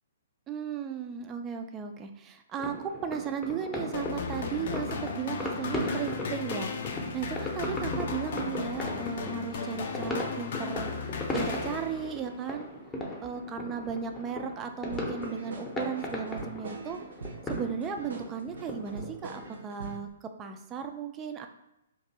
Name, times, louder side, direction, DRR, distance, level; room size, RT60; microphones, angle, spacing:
voice 1, 0.5-10.9 11.3-12.7 13.2-17.0 17.5-21.5, right 7 dB, 20° right, 5 dB, 0.4 m, -36 dB
sound 1, 2.6-19.5, left 1 dB, 15° left, 0.7 m, -37 dB
sound 2, 3.9-12.3, left 5 dB, 55° left, 0.4 m, -36 dB
sound 3, 14.9-20.1, right 4 dB, 80° right, 0.7 m, -43 dB
2.6 x 2.5 x 4.1 m, 0.85 s
hypercardioid pair, 130°, 0 cm